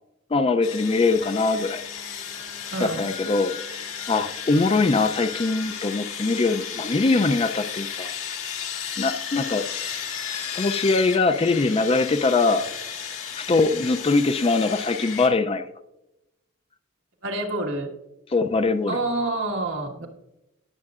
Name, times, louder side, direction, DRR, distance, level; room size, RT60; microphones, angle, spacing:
voice 1, 0.3-1.9 2.8-8.4 9.0-9.7 10.5-12.7 13.4-15.7 18.3-19.0, left 3 dB, 30° left, 10 dB, 0.4 m, -22 dB
Sawing, 0.6-15.3, left 7 dB, 90° left, 1.9 m, -34 dB
Singing, 0.6-7.2, left 4 dB, 60° left, 3.0 m, -45 dB
voice 2, 2.7-3.1 17.2-17.9 18.9-20.1, right 2 dB, 65° right, 2 dB, 1.6 m, -27 dB
19.5 x 7.5 x 2.4 m, 0.92 s
head